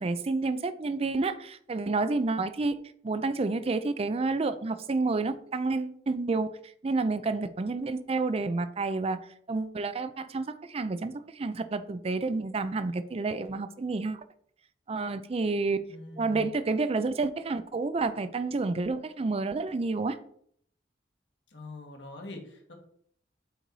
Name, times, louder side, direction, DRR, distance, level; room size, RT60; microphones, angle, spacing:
voice 1, 0.0-2.8 3.0-6.5 6.8-9.2 9.5-14.2 14.9-15.8 16.2-20.2, right 3 dB, 35° right, 0.4 m, -29 dB
voice 2, 15.8-16.5 21.5-22.7, left 2 dB, 75° left, 1.7 m, -43 dB
7.9 x 4.0 x 4.7 m
head